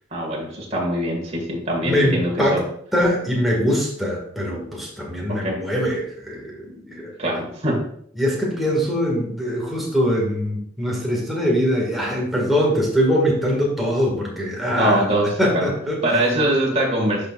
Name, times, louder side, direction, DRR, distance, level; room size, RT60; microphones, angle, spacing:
voice 1, 0.1-2.6 5.3-5.6 7.2-7.8 14.7-15.3 15.5-15.7 16.0-17.3, right 1 dB, 35° right, -2 dB, 1.9 m, -22 dB
voice 2, 1.8-2.6 2.9-7.1 8.2-16.2, equal, ahead, -3 dB, 1.8 m, -22 dB
11.5 x 4.5 x 2.5 m, 0.64 s
head